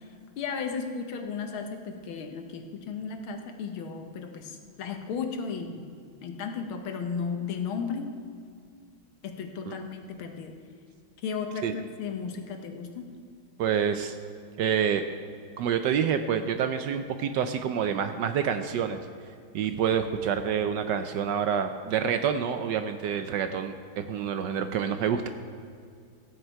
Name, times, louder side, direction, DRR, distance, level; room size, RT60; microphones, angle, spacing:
voice 1, 0.4-5.9 6.2-8.2 9.2-10.6 11.2-13.1, left 5 dB, 85° left, 5 dB, 1.9 m, -34 dB
voice 2, 13.6-14.1 14.6-15.0 15.6-19.0 19.5-25.3, right 8 dB, 70° right, 8 dB, 1.1 m, -27 dB
15.0 x 9.0 x 4.6 m, 2.3 s
omnidirectional pair, 2.2 m